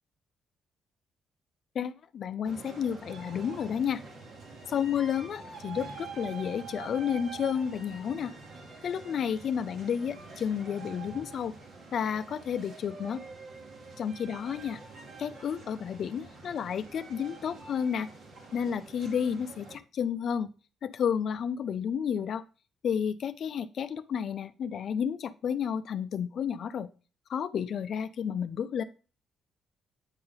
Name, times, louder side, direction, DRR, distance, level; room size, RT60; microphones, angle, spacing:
voice 1, 1.7-4.0 4.7-8.3 8.8-11.5 11.9-13.2 14.0-14.8 15.2-18.1 18.5-20.5 20.8-22.4 22.8-26.9 27.3-28.8, left 8 dB, 60° left, 12 dB, 0.3 m, -31 dB
sound 1, 2.4-19.8, right 4 dB, 65° right, 1.7 m, -46 dB
8.8 x 3.9 x 3.8 m, 0.36 s
cardioid pair, 90°, 0 cm